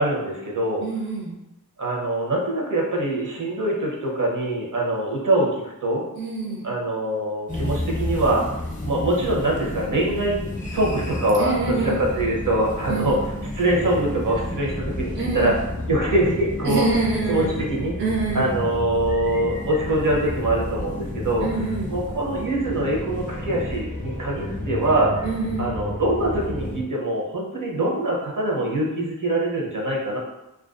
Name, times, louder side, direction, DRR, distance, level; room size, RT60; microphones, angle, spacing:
voice 1, 0.0-0.8 1.8-6.0 6.6-8.4 8.8-13.2 13.5-15.5 15.9-16.8 17.3-17.9 18.3-21.5 21.9-25.1 25.6-30.2, right 1 dB, 60° right, -3 dB, 0.7 m, -23 dB
voice 2, 0.8-1.4 6.2-6.7 11.4-12.0 12.9-13.2 15.2-15.5 16.7-17.5 18.0-18.6 21.4-22.0 25.2-25.7, right 3 dB, 35° right, -1 dB, 0.4 m, -26 dB
sound 1, 7.5-26.8, left 1 dB, 25° left, 0.5 m, -31 dB
2.4 x 2.3 x 2.4 m, 0.92 s
wide cardioid pair, 55°, 35 cm